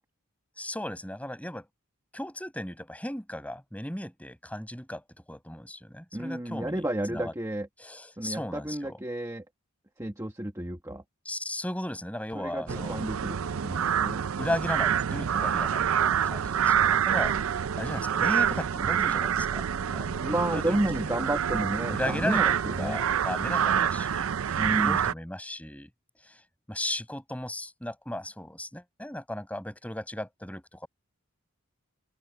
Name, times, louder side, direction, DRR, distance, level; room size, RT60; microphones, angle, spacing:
voice 1, 0.6-1.7 2.1-6.8 7.1-7.3 7.8-9.0 11.2-13.0 14.4-20.8 21.1-21.2 21.9-25.9 26.2-26.4 26.7-30.9, left 1 dB, 5° left, 5.6 m, -36 dB
voice 2, 6.1-7.7 8.2-9.4 10.0-11.0 12.3-14.2 20.2-23.0 24.6-25.0, right 1 dB, 15° right, 1.1 m, -31 dB
sound 1, 12.7-25.1, right 8 dB, 70° right, 0.4 m, -27 dB
open air
head